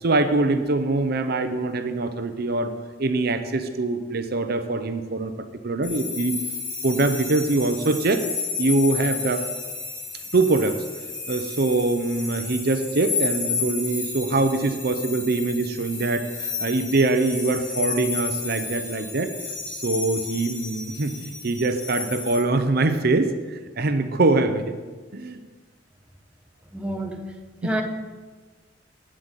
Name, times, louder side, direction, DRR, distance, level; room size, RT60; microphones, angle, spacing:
voice 1, 0.0-2.7 3.0-6.4 6.8-8.3 8.6-9.5 10.3-10.8 11.3-19.3 19.7-24.7 25.1-25.4 27.6-27.7, right 2 dB, 55° right, 9 dB, 0.7 m, -23 dB
sound 1, 5.8-22.4, left 4 dB, 75° left, 4.1 m, -32 dB
voice 2, 26.7-27.2 27.6-27.8, right 1 dB, 5° right, 2 dB, 1.0 m, -27 dB
9.1 x 7.5 x 8.1 m, 1.4 s
head